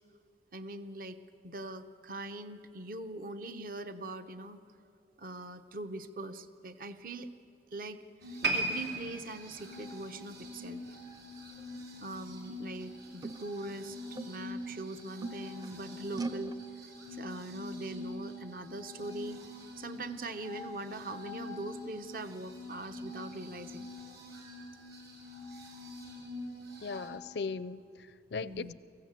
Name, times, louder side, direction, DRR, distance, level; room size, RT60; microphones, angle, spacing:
voice 1, 0.5-1.2 1.4-4.7 5.2-7.3 7.7-8.0 8.5-10.8 12.0-14.0 14.3-16.6 17.1-19.5 19.8-23.9 28.4-28.7, right 2 dB, 50° right, 0.9 m, -42 dB
sound 1, 8.2-27.1, left 1 dB, 70° right, 5.6 m, -45 dB
sound 2, 8.4-11.7 12.0-12.3 13.0-13.1, right 2 dB, 90° right, 2.7 m, -36 dB
sound 3, 11.4-11.8 12.5-12.6 13.2-14.6 15.0-15.8 16.1-16.6, right 4 dB, 20° right, 0.4 m, -41 dB
voice 2, 26.8-28.7, left 4 dB, 75° left, 0.5 m, -38 dB
23.5 x 15.5 x 8.4 m
head